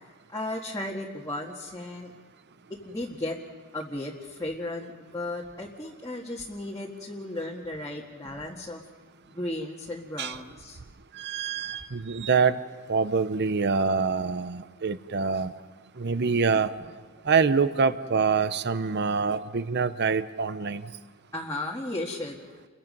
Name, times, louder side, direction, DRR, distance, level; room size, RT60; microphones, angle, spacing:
voice 1, 0.3-2.1 2.7-3.4 3.7-8.8 9.2-10.8 15.3-15.4 16.5-16.6 21.3-22.4, left 1 dB, 15° left, -3 dB, 1.8 m, -35 dB
voice 2, 11.2-12.6 12.9-15.5 16.0-16.7 17.3-20.8, right 5 dB, 55° right, 13 dB, 0.8 m, -25 dB
29.5 x 23.0 x 5.4 m, 1.5 s
head